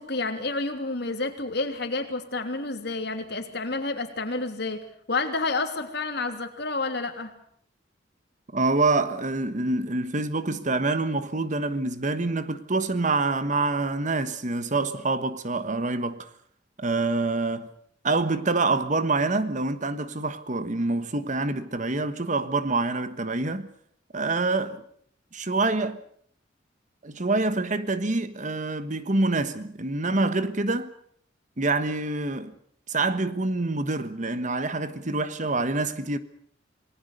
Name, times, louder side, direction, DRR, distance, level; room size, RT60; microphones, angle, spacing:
voice 1, 0.0-4.8 5.1-7.3, left 3 dB, 60° left, 3.1 m, -29 dB
voice 2, 8.5-16.3 16.8-17.7 18.0-23.7 24.1-24.8 25.3-26.0 27.0-30.9 31.6-32.5 32.9-36.2, right 3 dB, 40° right, 1.3 m, -26 dB
28.0 x 19.5 x 6.7 m
head